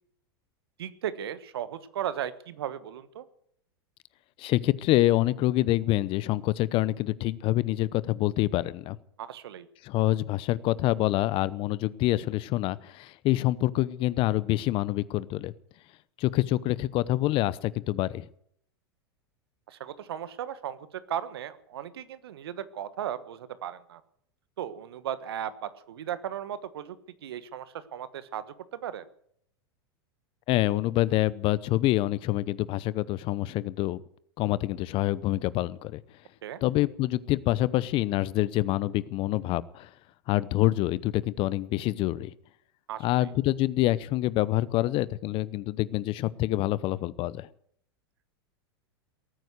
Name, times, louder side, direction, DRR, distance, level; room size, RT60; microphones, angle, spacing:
voice 1, 0.8-3.2 9.2-9.7 19.7-24.0 24.6-27.0 27.2-29.1 36.4-36.6 42.9-43.3, right 10 dB, 75° right, 14 dB, 1.4 m, -36 dB
voice 2, 4.4-9.0 9.8-15.5 16.2-18.3 30.5-34.0 34.4-36.0 36.6-39.9 40.3-42.3 43.0-47.5, left 16 dB, 45° left, 20 dB, 0.8 m, -26 dB
19.0 x 9.4 x 8.1 m, 0.68 s
hypercardioid pair, 100°, 13 cm